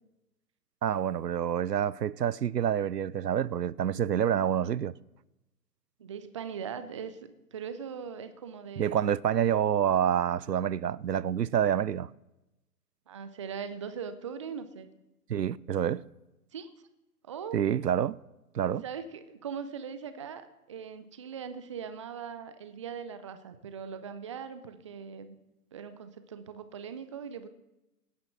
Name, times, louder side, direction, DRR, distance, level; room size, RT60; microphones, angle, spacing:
voice 1, 0.8-4.9 8.8-12.1 15.3-16.0 17.5-18.2 18.5-18.8, right 9 dB, 80° right, 0.6 m, -27 dB
voice 2, 6.0-9.1 13.1-14.9 16.5-16.9 17.3-17.6 18.8-25.4 25.7-27.5, right 7 dB, 20° right, 0.5 m, -40 dB
17.0 x 9.6 x 5.9 m
figure-of-eight pair, 130°, 47 cm